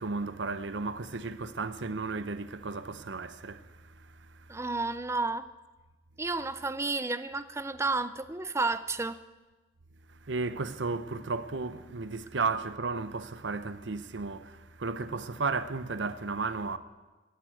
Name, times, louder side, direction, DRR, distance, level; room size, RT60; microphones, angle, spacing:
voice 1, 0.0-4.6 10.2-16.8, right 4 dB, 70° right, 0.8 m, -34 dB
voice 2, 4.5-5.5 6.2-9.2, right 3 dB, 15° right, 0.5 m, -31 dB
13.5 x 7.9 x 9.0 m
head